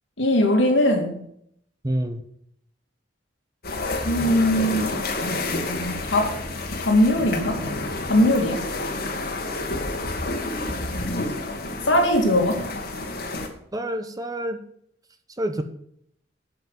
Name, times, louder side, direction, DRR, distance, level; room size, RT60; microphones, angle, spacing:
voice 1, 0.2-1.2 4.0-5.0 6.1-6.4 6.8-7.6 8.1-8.7 11.9-12.7, left 1 dB, 80° left, 2 dB, 2.5 m, -20 dB
voice 2, 1.8-2.2 13.7-14.6 15.4-15.6, right 1 dB, 20° right, 8 dB, 1.0 m, -27 dB
sound 1, 3.6-13.5, left 2 dB, 55° left, 1.9 m, -29 dB
11.5 x 6.0 x 7.4 m, 0.69 s
head